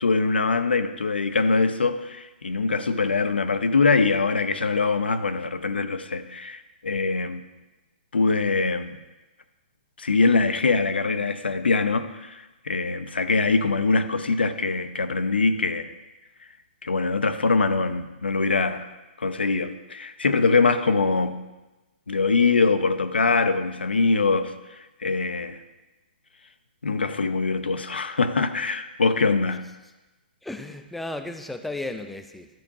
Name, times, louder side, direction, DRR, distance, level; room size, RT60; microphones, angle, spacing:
voice 1, 0.0-7.4 8.1-9.0 10.0-15.9 16.8-18.9 19.2-21.4 22.1-25.6 26.8-29.6, left 4 dB, 85° left, 10 dB, 0.7 m, -23 dB
voice 2, 30.4-32.5, left 2 dB, ahead, 7 dB, 0.5 m, -34 dB
12.5 x 4.5 x 4.8 m, 1.1 s
hypercardioid pair, 130°, 5 cm